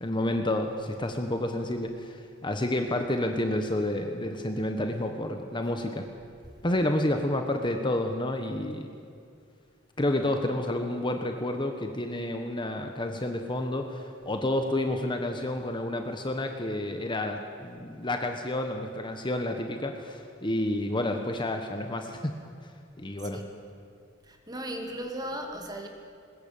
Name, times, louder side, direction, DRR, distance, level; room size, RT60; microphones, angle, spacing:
voice 1, 0.0-6.0 6.6-8.9 10.0-22.3 23.0-23.4, left 1 dB, 25° left, 5 dB, 1.3 m, -30 dB
voice 2, 24.3-25.9, right 1 dB, 20° right, 4 dB, 2.5 m, -36 dB
21.0 x 20.5 x 8.9 m, 2.3 s
head